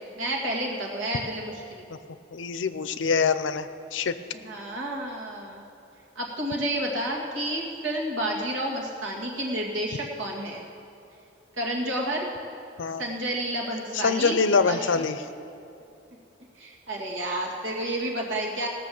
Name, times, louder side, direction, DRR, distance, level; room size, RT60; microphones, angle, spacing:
voice 1, 0.2-1.9 4.4-5.6 6.2-10.6 11.6-12.3 13.0-14.4 14.6-14.9 16.6-18.7, right 1 dB, 80° right, -1 dB, 2.2 m, -30 dB
voice 2, 2.3-4.1 12.8-13.0 13.9-15.2, left 5 dB, 75° left, 12 dB, 0.6 m, -24 dB
18.0 x 6.8 x 7.0 m, 2.8 s
head